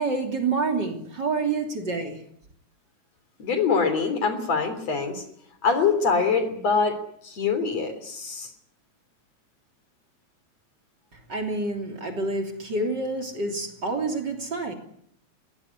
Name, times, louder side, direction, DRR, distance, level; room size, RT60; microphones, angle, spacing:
voice 1, 0.0-2.2 11.1-14.7, right 3 dB, 35° right, 4 dB, 3.5 m, -28 dB
voice 2, 3.4-5.2 5.6-7.0 7.2-8.5, left 5 dB, 60° left, 10 dB, 4.6 m, -24 dB
22.5 x 18.0 x 9.9 m, 0.70 s
omnidirectional pair, 3.4 m